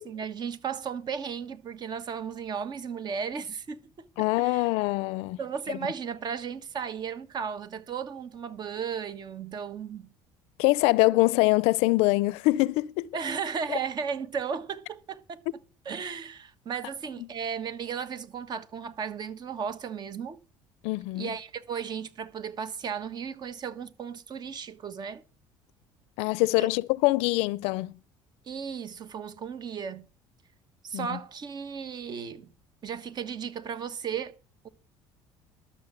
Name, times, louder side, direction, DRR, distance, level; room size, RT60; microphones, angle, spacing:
voice 1, 0.1-4.0 4.3-4.7 5.4-10.1 13.1-15.4 15.8-20.4 21.1-25.2 26.6-26.7 28.4-30.1 30.8-32.5 32.8-34.4 34.6-34.7, right 7 dB, 45° right, 1.3 m, -35 dB
voice 2, 4.2-5.4 5.7-5.8 10.6-13.1 13.7-13.8 17.2-17.3 20.8-21.3 26.2-27.9 30.9-31.2, left 21 dB, 80° left, 0.5 m, -24 dB
12.5 x 7.1 x 6.9 m
supercardioid pair, 100°, 10 cm